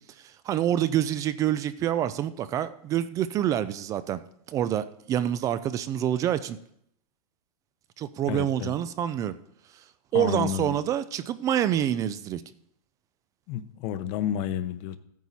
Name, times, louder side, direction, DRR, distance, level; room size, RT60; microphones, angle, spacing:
voice 1, 0.2-4.2 4.5-6.6 8.0-9.4 10.1-12.4, right 11 dB, 15° right, 14 dB, 0.3 m, -27 dB
voice 2, 8.3-8.7 10.1-10.8 13.5-15.0, left 10 dB, 35° left, 11 dB, 0.8 m, -30 dB
14.5 x 9.2 x 4.1 m, 0.73 s
supercardioid pair, 155°, 19 cm